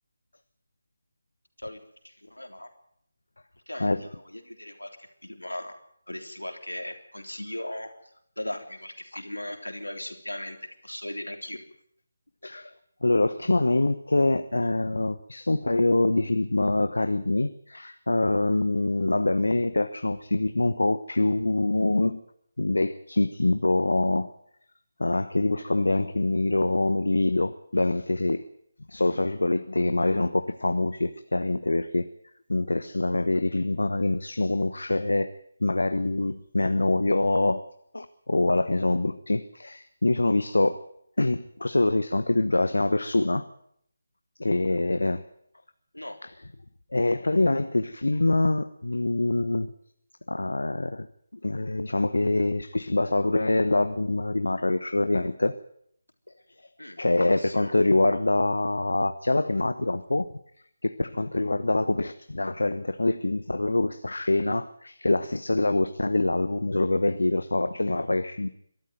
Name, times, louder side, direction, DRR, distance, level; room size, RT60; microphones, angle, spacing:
voice 1, 2.2-2.7 3.7-5.7 6.1-7.9 8.4-10.6 10.8-11.6 45.9-46.2 56.8-57.0 57.4-57.7, left 1 dB, 90° left, 6 dB, 3.5 m, -38 dB
voice 2, 3.7-4.0 12.4-12.7 13.0-22.2 22.6-24.3 25.0-28.4 28.9-32.1 32.5-35.3 35.6-37.7 37.9-40.8 41.2-43.5 44.4-45.2 46.2-46.3 46.9-49.7 50.3-51.1 51.4-55.6 57.0-60.3 60.8-68.5, left 2 dB, 75° left, 11 dB, 1.1 m, -25 dB
22.5 x 13.5 x 9.1 m, 0.70 s
figure-of-eight pair, 155°, 0 cm